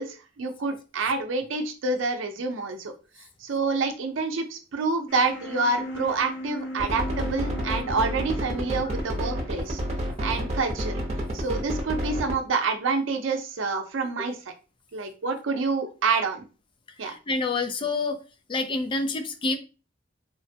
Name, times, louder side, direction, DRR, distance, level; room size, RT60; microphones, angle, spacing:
voice 1, 0.0-2.9 3.4-9.8 10.2-11.0 11.3-14.4 14.9-16.5 17.0-17.1, right 4 dB, 85° right, 6 dB, 0.5 m, -27 dB
sound 1, 5.1-11.0, equal, 65° left, 0.7 m, -38 dB
sound 2, 6.8-12.4, equal, 35° right, 0.8 m, -29 dB
voice 2, 17.0-18.2 18.5-19.6, left 3 dB, 25° left, 7 dB, 0.4 m, -28 dB
3.1 x 2.1 x 2.7 m, 0.33 s
head